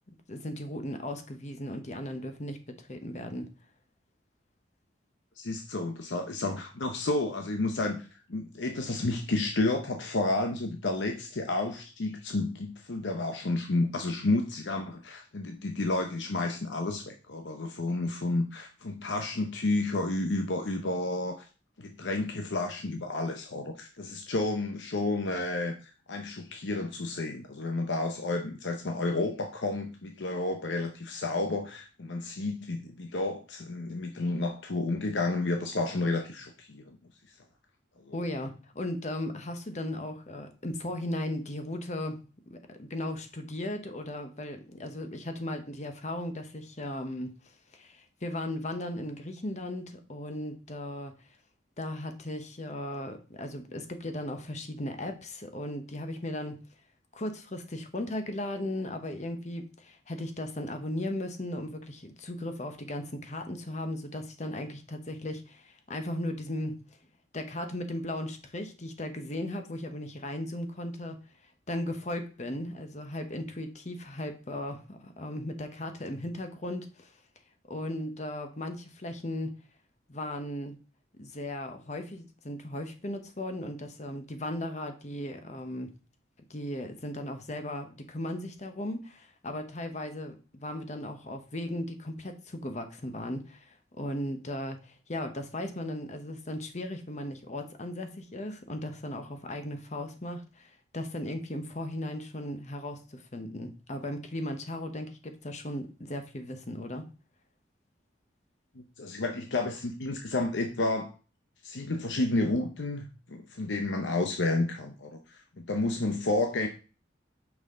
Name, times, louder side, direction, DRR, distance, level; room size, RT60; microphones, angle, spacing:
voice 1, 0.3-2.6 2.9-3.5 38.1-42.2 42.5-47.4 47.7-51.1 51.8-56.6 57.1-66.8 67.3-71.2 71.7-77.1 77.7-79.5 80.1-80.8 81.2-85.9 86.5-107.1, left 1 dB, 40° left, 7 dB, 1.0 m, -36 dB
voice 2, 5.4-21.5 21.8-37.0 38.0-38.1 108.8-111.1 111.6-116.7, left 2 dB, 75° left, 4 dB, 0.8 m, -31 dB
6.2 x 5.6 x 3.7 m, 0.34 s
head